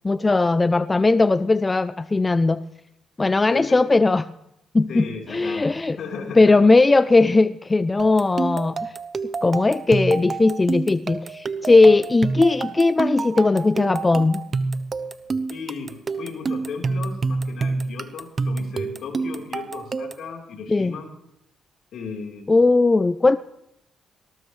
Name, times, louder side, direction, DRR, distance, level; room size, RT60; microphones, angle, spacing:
voice 1, 0.0-2.6 3.2-4.3 4.7-6.0 6.4-8.8 9.4-14.4 20.7-21.0 22.5-23.4, left 3 dB, 20° left, 14 dB, 0.5 m, -18 dB
voice 2, 4.9-5.7 6.0-6.5 15.5-21.1 21.9-22.6, left 5 dB, 70° left, 1 dB, 4.0 m, -35 dB
sound 1, 8.0-20.3, right 4 dB, 40° right, 0.9 m, -28 dB
20.0 x 18.5 x 3.3 m, 0.80 s
cardioid pair, 90°, 0 cm